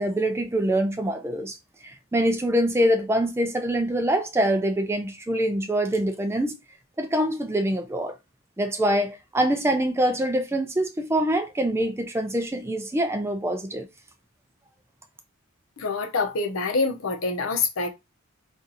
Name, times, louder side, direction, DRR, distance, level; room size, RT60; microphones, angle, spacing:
voice 1, 0.0-1.6 1.8-6.6 7.0-8.1 8.6-13.9, right 1 dB, 10° right, 0.4 m, -24 dB
voice 2, 15.8-17.9, left 4 dB, 70° left, 0.8 m, -26 dB
2.7 x 2.5 x 3.9 m
head